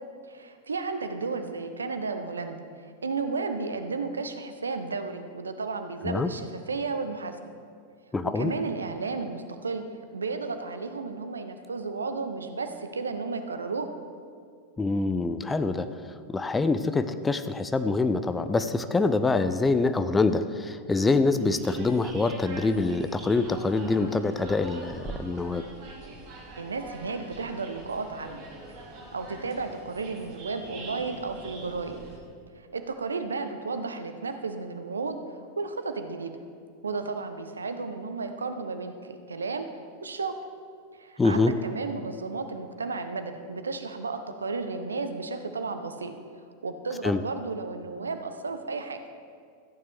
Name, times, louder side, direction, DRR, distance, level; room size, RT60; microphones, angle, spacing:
voice 1, 0.3-7.4 8.3-9.9 10.1-13.9 26.5-28.4 29.1-32.0 32.6-35.2 35.6-36.3 36.8-39.7 40.0-40.4 40.9-46.1 46.6-49.0, right 4 dB, 75° right, 8 dB, 0.7 m, -33 dB
voice 2, 8.1-8.5 14.8-15.9 16.3-25.6 41.2-41.5 47.0-47.2, left 3 dB, 10° left, 10 dB, 0.5 m, -25 dB
sound 1, 21.4-32.2, right 2 dB, 40° right, 2.2 m, -44 dB
14.0 x 9.4 x 3.5 m, 2.2 s
figure-of-eight pair, 90°, 0 cm